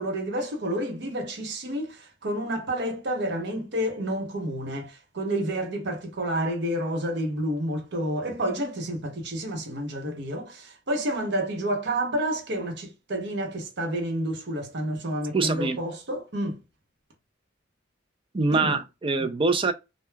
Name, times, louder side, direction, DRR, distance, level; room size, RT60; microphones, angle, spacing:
voice 1, 0.0-16.6 18.5-18.8, right 1 dB, 60° right, 0.8 m, -29 dB
voice 2, 15.3-15.8 18.3-19.7, right 3 dB, 25° right, 0.4 m, -24 dB
3.1 x 2.2 x 2.2 m
head